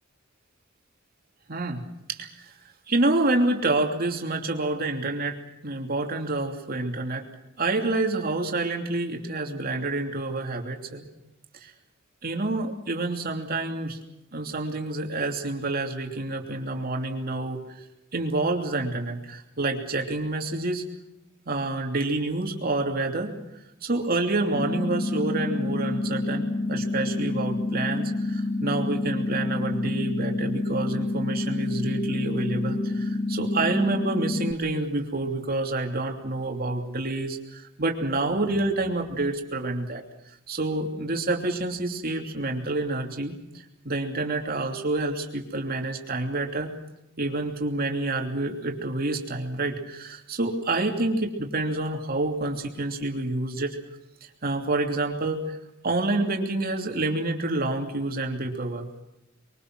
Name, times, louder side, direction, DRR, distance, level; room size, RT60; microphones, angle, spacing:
voice 1, 1.5-1.8 2.1-2.3 2.9-7.2 7.6-11.0 11.6-11.7 12.2-14.0 14.3-17.6 18.1-20.8 21.4-23.4 23.8-40.0 40.5-46.7 47.2-53.8 54.4-55.6 55.8-59.0, right 2 dB, 50° right, 2 dB, 3.0 m, -28 dB
sound 1, 24.5-34.5, left 2 dB, 35° left, 0.8 m, -28 dB
24.5 x 23.0 x 6.2 m, 0.91 s
head